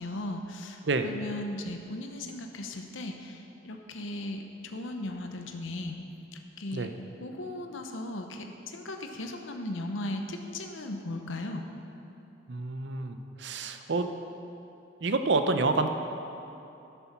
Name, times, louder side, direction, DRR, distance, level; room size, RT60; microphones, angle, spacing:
voice 1, 0.0-6.0 6.3-6.9 7.2-11.6, left 1 dB, 85° left, 4 dB, 0.8 m, -37 dB
voice 2, 12.5-14.0 15.0-15.9, right 3 dB, 65° right, 7 dB, 0.7 m, -28 dB
11.5 x 6.9 x 6.0 m, 2.8 s
head